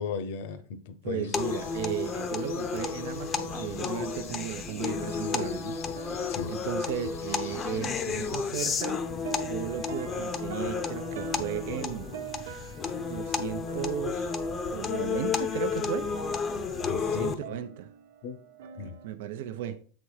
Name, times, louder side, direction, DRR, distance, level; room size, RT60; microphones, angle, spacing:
voice 1, 0.0-1.3 6.3-6.5 16.8-17.4 18.2-18.4 18.8-18.9, left 6 dB, 60° left, 0.9 m, -35 dB
voice 2, 1.0-5.8 6.2-12.1 12.4-12.6 13.0-14.3 14.7-16.1 16.7-16.8 17.0-17.9 18.8-19.8, right 10 dB, 65° right, 0.7 m, -36 dB
sound 1, 1.2-8.8, left 8 dB, 90° left, 1.3 m, -49 dB
sound 2, 1.3-17.3, left 6 dB, 20° left, 0.7 m, -32 dB
sound 3, 1.4-19.1, right 9 dB, 80° right, 1.2 m, -46 dB
7.6 x 4.2 x 4.9 m
supercardioid pair, 160°, 0 cm